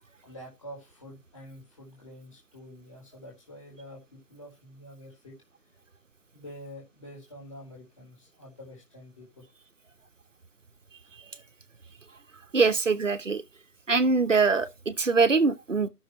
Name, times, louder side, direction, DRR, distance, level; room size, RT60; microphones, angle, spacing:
voice 1, 0.2-5.3 6.3-9.5, equal, 20° left, 4.2 m, -47 dB
voice 2, 12.5-13.4 13.9-15.9, right 4 dB, 55° right, 1.0 m, -23 dB
17.0 x 6.5 x 3.1 m
figure-of-eight pair, 175°, 47 cm